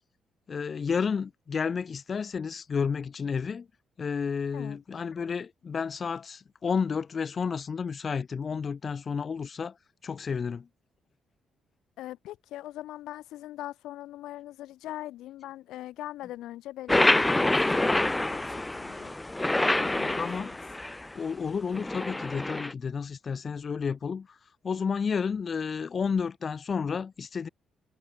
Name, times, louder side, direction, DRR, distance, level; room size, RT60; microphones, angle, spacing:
voice 1, 0.5-3.7 4.0-9.8 10.0-10.7 20.2-20.5 21.1-24.4 24.6-27.5, left 6 dB, 45° left, 0.9 m, -31 dB
voice 2, 12.0-19.1 19.6-20.6, left 14 dB, 85° left, 1.4 m, -41 dB
sound 1, 16.9-21.1 21.7-22.7, left 2 dB, 15° left, 0.4 m, -26 dB
cardioid pair, 90°, 0 cm